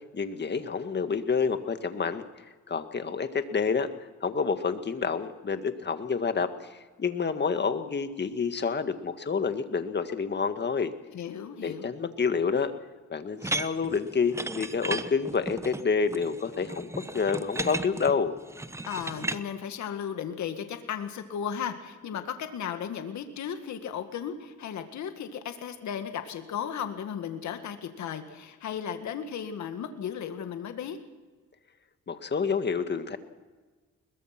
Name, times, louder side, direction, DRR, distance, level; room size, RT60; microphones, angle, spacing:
voice 1, 0.1-2.2 2.7-3.9 4.2-6.5 7.0-10.9 11.6-12.7 13.1-18.3 32.1-33.2, left 5 dB, 35° left, 9 dB, 1.9 m, -28 dB
voice 2, 11.1-11.9 18.9-31.0, left 8 dB, 70° left, 7 dB, 2.0 m, -35 dB
sound 1, 13.4-19.4, right 2 dB, 10° right, 1.1 m, -35 dB
22.0 x 21.0 x 6.0 m, 1.3 s
cardioid pair, 90°, 30 cm